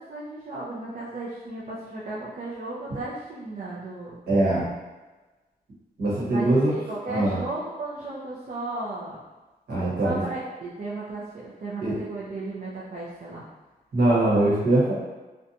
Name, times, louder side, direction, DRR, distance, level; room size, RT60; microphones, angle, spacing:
voice 1, 0.0-4.2 6.3-9.2 10.0-13.5, right 2 dB, 50° right, -7 dB, 0.4 m, -35 dB
voice 2, 4.3-4.7 6.0-6.7 7.1-7.4 9.7-10.2 11.8-11.9 13.9-14.9, right 1 dB, 75° right, -8 dB, 1.1 m, -22 dB
2.5 x 2.2 x 2.7 m, 1.2 s
wide cardioid pair, 120°, 17 cm